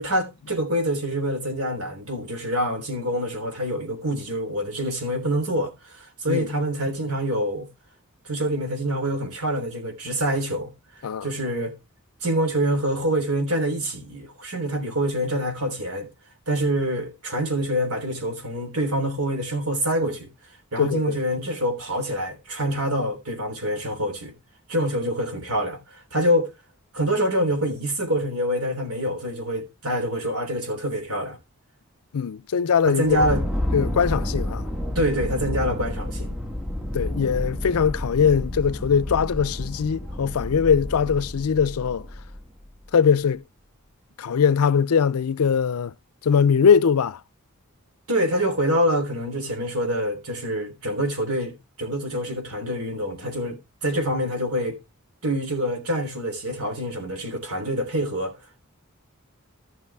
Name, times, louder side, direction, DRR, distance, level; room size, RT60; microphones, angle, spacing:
voice 1, 0.0-7.7 8.2-10.7 11.2-11.7 12.2-16.1 16.5-20.3 20.7-24.3 24.7-26.5 26.9-31.4 32.9-33.4 34.9-36.4 48.1-54.8 55.2-58.3, equal, 85° right, 3.3 m, -26 dB
voice 2, 20.8-21.2 32.1-33.3 33.7-34.7 36.9-42.1 42.9-43.4 44.2-45.9 46.2-47.2, left 6 dB, 80° left, 0.4 m, -21 dB
sound 1, 33.0-42.7, left 1 dB, 5° right, 1.2 m, -30 dB
15.0 x 6.1 x 3.4 m
head